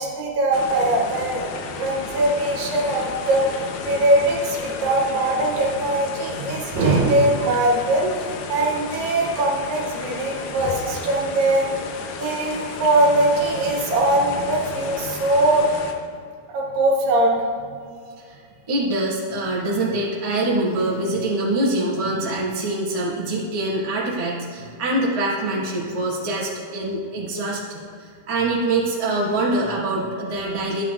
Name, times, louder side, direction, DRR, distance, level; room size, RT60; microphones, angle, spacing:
voice 1, 0.0-1.5 1.8-3.4 3.8-11.7 12.2-15.7 16.5-17.5, right 1 dB, 85° right, -2 dB, 3.0 m, -21 dB
sound 1, 0.5-15.9, left 5 dB, 80° left, 2.3 m, -33 dB
voice 2, 18.7-27.8 28.3-30.8, right 2 dB, 20° right, -7 dB, 1.1 m, -24 dB
12.5 x 9.0 x 2.3 m, 2.3 s
omnidirectional pair, 3.9 m